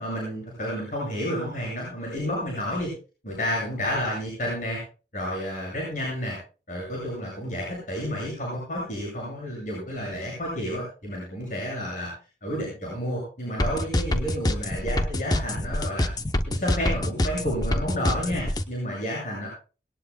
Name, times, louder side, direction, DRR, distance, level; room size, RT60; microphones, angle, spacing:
voice 1, 0.0-2.9 3.2-4.8 5.1-6.4 6.7-12.1 12.4-16.1 16.5-19.5, equal, 45° left, -3 dB, 8.0 m, -30 dB
sound 1, 13.6-18.6, left 1 dB, 20° left, 0.9 m, -25 dB
20.5 x 18.5 x 2.3 m, 0.35 s
head